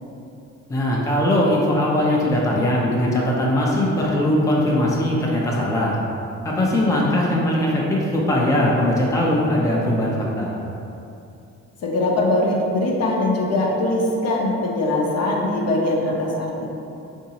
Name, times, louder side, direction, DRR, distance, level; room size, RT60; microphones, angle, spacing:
voice 1, 0.7-6.0 6.4-10.5, left 1 dB, 10° left, -4 dB, 0.5 m, -20 dB
voice 2, 11.8-16.7, left 1 dB, 55° left, -2 dB, 0.7 m, -21 dB
3.7 x 2.7 x 2.8 m, 2.7 s
cardioid pair, 90°, 30 cm